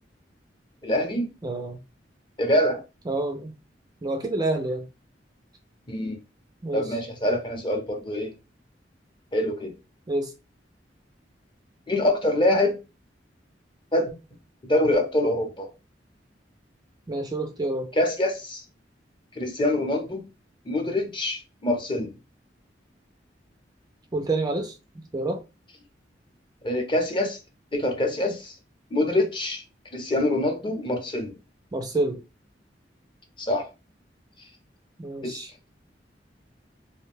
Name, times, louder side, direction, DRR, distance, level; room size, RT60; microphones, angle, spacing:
voice 1, 0.8-1.3 2.4-2.8 5.9-6.2 6.7-8.3 9.3-9.7 11.9-12.8 13.9-14.1 14.6-15.7 17.9-18.6 19.4-20.2 20.7-22.1 26.6-27.4 27.7-28.5 28.9-29.6 29.9-31.3 33.4-33.7 35.2-35.4, left 1 dB, 30° left, 0.7 m, -25 dB
voice 2, 1.4-1.8 3.1-3.5 4.0-4.8 6.6-6.9 10.1-10.3 17.1-17.9 24.1-24.7 25.1-25.4 31.7-32.2 35.0-35.5, right 2 dB, 20° right, 0.3 m, -28 dB
2.5 x 2.1 x 3.2 m
head